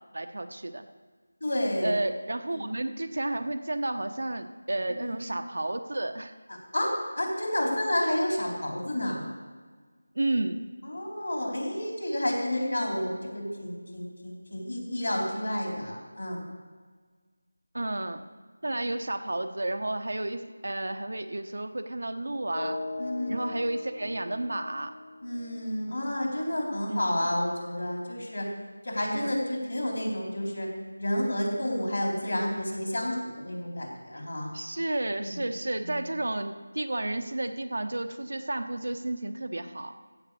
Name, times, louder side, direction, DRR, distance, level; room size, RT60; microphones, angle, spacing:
voice 1, 0.1-0.8 1.8-6.3 10.1-10.7 17.7-18.2 18.6-22.8 23.3-25.0 26.9-27.1 29.0-29.4 34.5-40.0, right 2 dB, 65° right, 8 dB, 1.0 m, -32 dB
voice 2, 1.4-2.0 2.5-2.7 5.0-5.2 6.7-9.2 10.8-16.4 23.0-23.5 25.2-28.5 28.8-30.7 31.0-34.5 35.2-35.4 35.8-36.0, left 1 dB, 70° left, -1 dB, 4.2 m, -30 dB
sound 1, 22.5-26.5, left 2 dB, 50° left, 1.0 m, -39 dB
15.0 x 5.9 x 8.6 m, 1.5 s
figure-of-eight pair, 175°, 0 cm